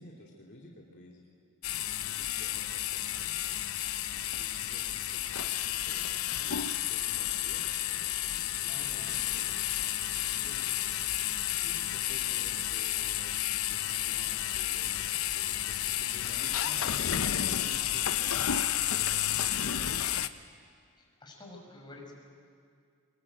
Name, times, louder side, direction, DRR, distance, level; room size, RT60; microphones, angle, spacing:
voice 1, 0.0-1.6 2.0-4.0 4.3-9.6 10.3-10.6 11.6-20.2, left 1 dB, 55° left, -2 dB, 2.7 m, -53 dB
sound 1, 1.6-20.3, left 11 dB, 75° left, 0.8 m, -31 dB
voice 2, 8.7-9.2 16.1-17.3 17.6-18.0 21.0-22.1, left 1 dB, 20° left, -1 dB, 5.5 m, -50 dB
23.5 x 21.5 x 9.1 m, 2.2 s
head